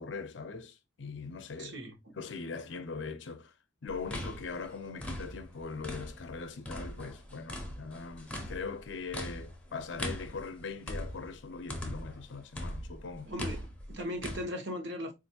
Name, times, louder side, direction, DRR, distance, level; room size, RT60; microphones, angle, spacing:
voice 1, 0.0-1.7 2.2-3.5 3.8-13.3, left 4 dB, 60° left, 0.5 m, -41 dB
voice 2, 1.6-2.2 13.3-15.1, equal, 60° right, 1.0 m, -38 dB
sound 1, 3.9-6.3 6.6-12.2 12.5-14.4, left 1 dB, 5° left, 0.6 m, -40 dB
4.3 x 2.5 x 2.7 m
head